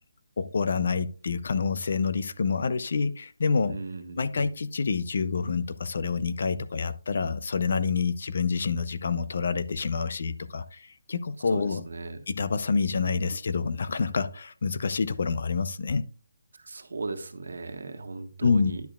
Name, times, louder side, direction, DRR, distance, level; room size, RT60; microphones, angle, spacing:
voice 1, 0.4-3.8 4.2-11.8 12.3-16.1 18.4-18.7, left 5 dB, 45° left, 0.5 m, -27 dB
voice 2, 3.7-4.5 11.5-12.2 16.6-18.8, right 3 dB, 70° right, 1.4 m, -37 dB
10.5 x 6.9 x 2.4 m
hypercardioid pair, 180°, 0 cm